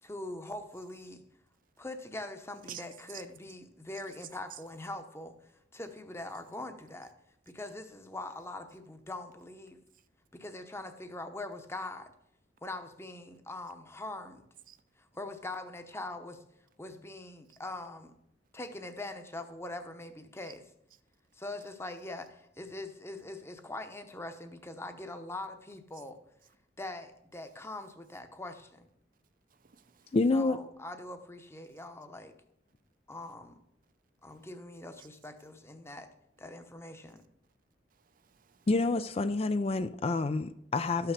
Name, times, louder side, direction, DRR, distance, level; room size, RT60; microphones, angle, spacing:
voice 1, 0.0-1.3 1.8-5.4 5.7-7.1 7.5-9.8 10.3-12.1 12.6-14.4 15.0-16.4 16.8-18.1 18.5-20.6 21.3-26.2 26.8-28.9 30.3-32.3 33.1-33.6 34.2-37.2, left 2 dB, 15° left, 0.9 m, -42 dB
voice 2, 29.5-30.2 34.4-34.5 35.0-35.1 38.0-38.7, right 10 dB, 50° right, 0.6 m, -49 dB
voice 3, 30.1-30.6 38.7-41.1, left 3 dB, 35° left, 0.4 m, -28 dB
12.5 x 5.8 x 6.7 m
head